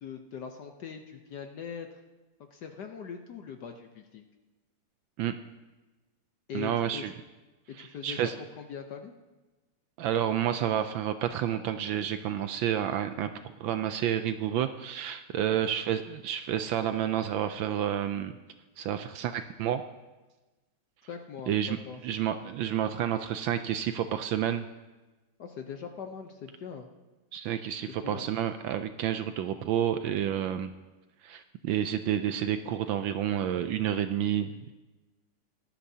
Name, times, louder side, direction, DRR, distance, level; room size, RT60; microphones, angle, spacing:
voice 1, 0.0-1.9 2.5-4.2 6.5-7.1 7.7-8.2 8.6-9.1 15.5-15.7 21.1-22.0 25.4-26.9 28.0-28.3, left 7 dB, 65° left, 5 dB, 1.1 m, -41 dB
voice 2, 6.5-7.1 7.8-8.3 10.0-13.3 13.6-18.3 18.8-19.8 21.5-24.7 27.3-30.7 31.2-34.7, right 10 dB, 75° right, 9 dB, 1.2 m, -30 dB
18.0 x 13.5 x 2.8 m, 1.2 s
omnidirectional pair, 2.4 m